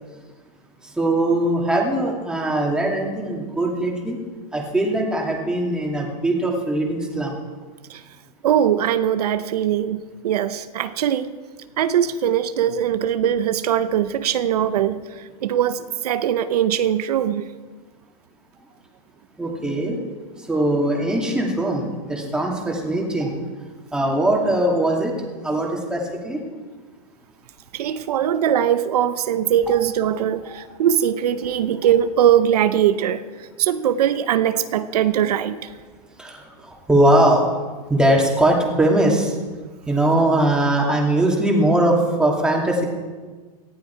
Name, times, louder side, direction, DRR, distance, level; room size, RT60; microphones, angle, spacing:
voice 1, 1.0-4.2 4.5-7.4 19.4-20.0 20.4-23.3 23.9-25.1 25.4-26.4 30.4-30.6 36.2-37.5 37.9-39.3 39.9-42.8, right 1 dB, 5° right, -1 dB, 2.6 m, -20 dB
voice 2, 8.4-11.3 11.8-15.0 15.4-17.4 27.7-33.2 33.6-35.5, right 10 dB, 80° right, 11 dB, 0.9 m, -21 dB
18.0 x 15.0 x 4.6 m, 1.4 s
supercardioid pair, 150°, 20 cm